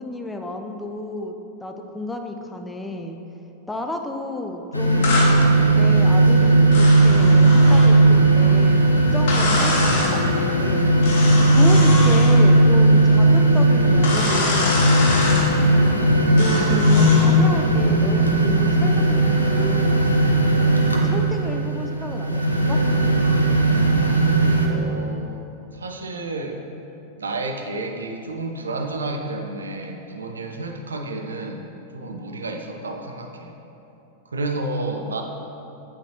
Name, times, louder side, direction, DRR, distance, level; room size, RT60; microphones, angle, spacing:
voice 1, 0.0-3.2 3.7-14.8 16.4-20.0 21.0-22.8, left 1 dB, 10° left, 4 dB, 0.6 m, -32 dB
sound 1, 4.7-24.7, right 1 dB, 85° left, 0.7 m, -17 dB
sound 2, 5.0-5.3 6.7-7.9 9.3-10.1 11.0-12.4 14.0-15.5 16.4-17.3, left 2 dB, 55° left, 1.9 m, -25 dB
voice 2, 24.6-25.4 25.7-26.6 27.2-31.6 31.9-33.5 34.2-35.2, right 2 dB, 70° right, 3 dB, 0.7 m, -31 dB
8.6 x 8.5 x 2.9 m, 2.9 s
figure-of-eight pair, 90°, 0 cm